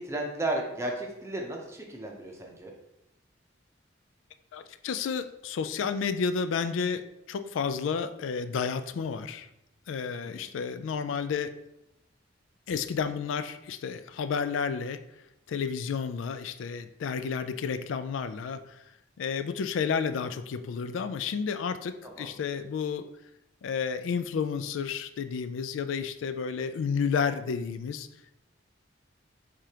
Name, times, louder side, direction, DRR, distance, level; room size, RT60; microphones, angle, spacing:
voice 1, 0.0-2.7 10.1-10.4 22.0-22.3, right 1 dB, 15° right, 0 dB, 0.6 m, -34 dB
voice 2, 4.5-7.0 7.3-9.5 9.9-11.5 12.7-15.0 15.5-18.6 19.2-23.1 23.6-28.1, left 6 dB, 85° left, 11 dB, 0.3 m, -31 dB
4.9 x 3.6 x 2.8 m, 0.86 s
head